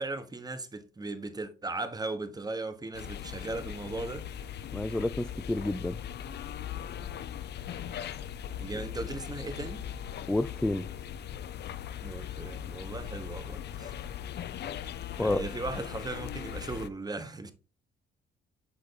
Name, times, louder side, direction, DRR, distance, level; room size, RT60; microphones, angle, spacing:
voice 1, 0.0-4.3 8.5-9.8 12.0-13.9 15.2-17.5, right 3 dB, 20° right, 1.0 m, -37 dB
sound 1, 2.9-16.9, left 9 dB, 60° left, 0.5 m, -39 dB
voice 2, 4.7-6.0 10.3-10.9 15.2-15.4, left 1 dB, 5° left, 0.3 m, -29 dB
7.9 x 3.4 x 4.0 m
cardioid pair, 90°, 20 cm